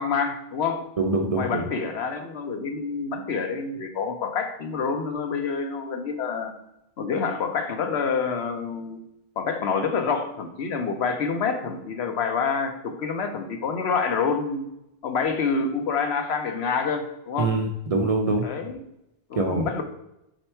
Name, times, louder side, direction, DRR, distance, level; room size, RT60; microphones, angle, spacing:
voice 1, 0.0-0.9 1.3-6.5 7.0-9.0 9.4-14.6 15.0-17.6 18.4-18.8 19.3-19.8, left 5 dB, 70° left, 6 dB, 1.0 m, -27 dB
voice 2, 1.0-1.6 17.4-18.5 19.4-19.6, right 2 dB, 45° right, 1 dB, 0.5 m, -24 dB
4.9 x 4.3 x 4.4 m, 0.85 s
omnidirectional pair, 1.2 m